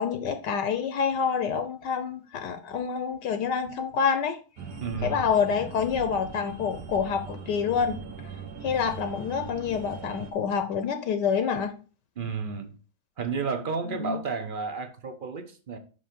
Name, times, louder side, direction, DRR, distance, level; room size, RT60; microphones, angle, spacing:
voice 1, 0.0-4.4 5.0-8.0 8.6-11.7 13.9-14.2, left 6 dB, 75° left, 1.3 m, -27 dB
sound 1, 4.6-10.3, right 5 dB, 70° right, 1.8 m, -40 dB
voice 2, 4.8-5.2 12.2-12.7 13.2-15.8, right 5 dB, 45° right, 0.7 m, -32 dB
6.1 x 5.5 x 5.1 m
omnidirectional pair, 2.0 m